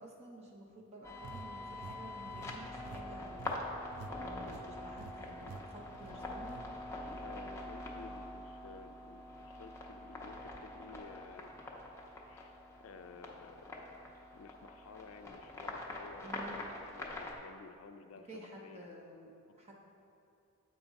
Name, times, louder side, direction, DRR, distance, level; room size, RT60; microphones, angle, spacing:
voice 1, 0.0-3.4 4.2-6.6 16.2-16.6 18.3-19.7, right 1 dB, 30° right, -1 dB, 0.9 m, -51 dB
sound 1, 1.0-17.3, left 2 dB, 15° left, 0.6 m, -45 dB
sound 2, 1.2-4.1 4.4-4.7 5.0-5.1 5.4-5.6 5.9-6.6, right 4 dB, 85° right, 0.4 m, -50 dB
voice 2, 4.3-4.8 7.2-11.5 12.3-18.9, left 5 dB, 65° left, 9 dB, 0.4 m, -54 dB
7.7 x 3.7 x 5.1 m, 2.6 s
head